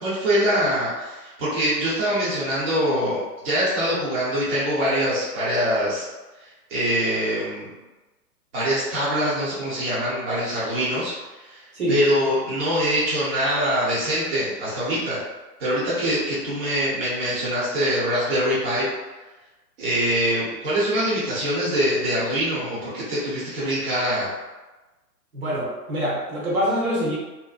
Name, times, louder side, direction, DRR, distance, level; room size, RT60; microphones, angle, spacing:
voice 1, 0.0-6.0 6.7-7.7 8.5-11.1 11.4-11.6 11.9-15.2 15.6-18.9 19.8-24.3, equal, 40° right, -10 dB, 0.8 m, -24 dB
voice 2, 25.3-27.2, equal, 60° right, -5 dB, 1.0 m, -25 dB
2.5 x 2.1 x 2.3 m, 1.1 s
hypercardioid pair, 155°, 48 cm